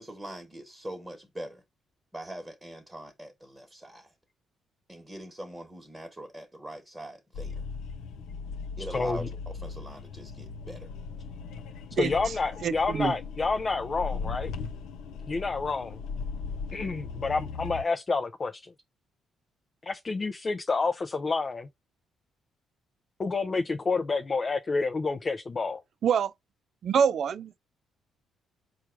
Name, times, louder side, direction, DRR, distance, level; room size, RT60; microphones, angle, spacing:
voice 1, 0.0-1.6 2.1-4.1 4.9-7.6 8.8-10.9, right 1 dB, 15° right, 1.2 m, -42 dB
sound 1, 7.3-17.8, left 5 dB, 85° left, 0.5 m, -38 dB
voice 2, 8.9-9.3 12.0-14.5 15.3-16.0 16.7-18.7 19.8-21.7 23.2-25.8, left 4 dB, 35° left, 0.4 m, -29 dB
voice 3, 12.6-13.1 26.0-26.3 26.8-27.5, right 7 dB, 60° right, 0.4 m, -25 dB
4.5 x 2.4 x 4.5 m
cardioid pair, 90°, 0 cm